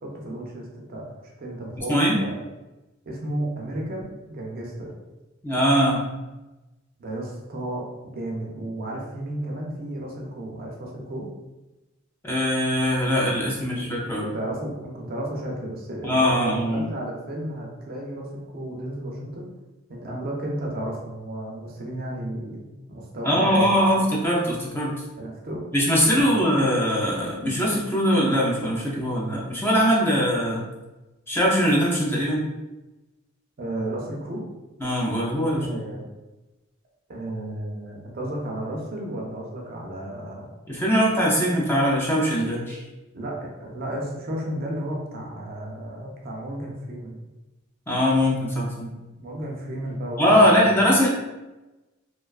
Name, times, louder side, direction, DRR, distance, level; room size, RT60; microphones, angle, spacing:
voice 1, 0.0-2.4 3.1-4.9 7.0-7.8 8.1-11.3 13.6-13.7 14.0-19.5 19.9-24.1 25.2-25.6 26.1-26.3 33.6-34.5 35.6-36.1 37.1-40.5 43.1-47.2 49.2-50.7, right 1 dB, 45° right, -1 dB, 0.4 m, -33 dB
voice 2, 5.4-6.0 12.2-14.3 16.0-16.9 23.2-24.9 25.7-30.7 31.3-32.4 34.8-35.8 40.7-42.8 47.9-48.9 50.2-51.1, equal, 10° left, -5 dB, 0.4 m, -21 dB
2.4 x 2.3 x 2.3 m, 1.1 s
head